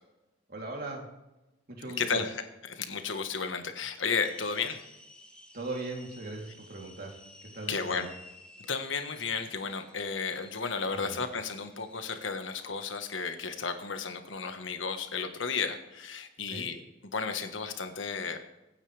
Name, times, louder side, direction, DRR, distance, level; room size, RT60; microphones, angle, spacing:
voice 1, 0.5-1.0 1.7-2.2 5.5-8.1 10.9-11.2 16.5-16.7, right 2 dB, 50° right, 0 dB, 3.3 m, -39 dB
voice 2, 2.0-2.3 2.7-4.8 7.7-8.1 8.7-16.8 17.1-18.4, left 5 dB, 75° left, 7 dB, 1.4 m, -33 dB
sound 1, 4.2-13.3, left 1 dB, 5° left, 1.5 m, -55 dB
23.5 x 9.6 x 3.4 m, 1.0 s
head